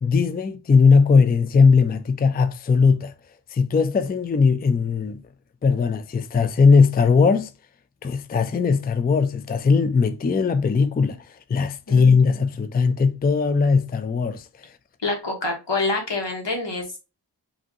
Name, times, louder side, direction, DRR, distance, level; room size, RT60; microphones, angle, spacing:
voice 1, 0.0-3.1 3.5-5.2 5.6-7.5 8.0-11.2 11.5-14.4, left 5 dB, 25° left, 0.4 m, -19 dB
voice 2, 15.0-16.8, left 3 dB, 80° left, 1.4 m, -26 dB
4.9 x 2.8 x 2.8 m
wide cardioid pair, 55°, 43 cm